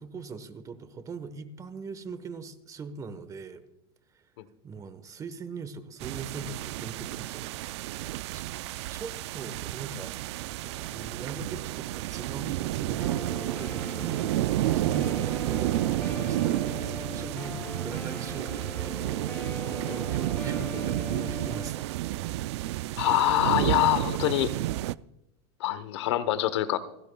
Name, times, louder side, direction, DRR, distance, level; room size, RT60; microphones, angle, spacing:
voice 1, 0.0-3.6 4.1-4.2 4.6-8.5 8.9-10.2 10.6-22.0, right 4 dB, 25° right, 12 dB, 1.2 m, -41 dB
sound 1, 6.0-24.9, right 16 dB, 80° right, 0.4 m, -31 dB
Guitar, 13.0-21.7, left 4 dB, 15° left, 0.8 m, -41 dB
voice 2, 22.9-24.5 25.6-26.8, left 14 dB, 85° left, 14 dB, 1.0 m, -25 dB
29.5 x 10.5 x 2.3 m, 0.88 s
supercardioid pair, 135°, 14 cm